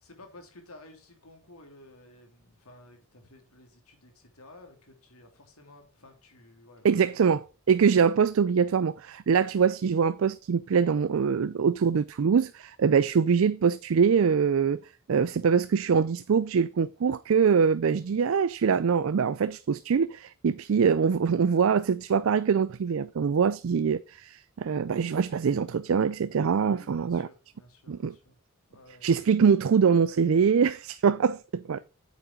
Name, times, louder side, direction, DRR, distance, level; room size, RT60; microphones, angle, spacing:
voice 1, 0.0-7.0 15.3-15.5 26.5-28.4 28.7-29.1 31.6-31.8, left 2 dB, 85° left, 2.9 m, -53 dB
voice 2, 6.8-14.8 15.1-27.3 27.9-28.1 29.0-31.8, right 6 dB, 65° right, 0.4 m, -24 dB
8.8 x 7.3 x 3.7 m
head